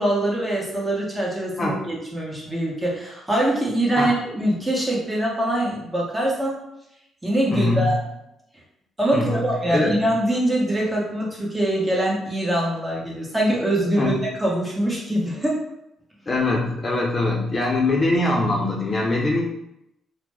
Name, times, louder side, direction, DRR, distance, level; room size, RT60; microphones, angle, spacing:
voice 1, 0.0-6.6 7.2-7.9 9.0-14.1 14.4-15.6, right 1 dB, 15° right, -3 dB, 1.2 m, -23 dB
voice 2, 7.5-7.9 9.1-9.9 14.0-14.2 16.3-19.5, left 2 dB, 35° left, -1 dB, 0.6 m, -22 dB
2.9 x 2.1 x 3.5 m, 0.83 s
supercardioid pair, 60°, 0 cm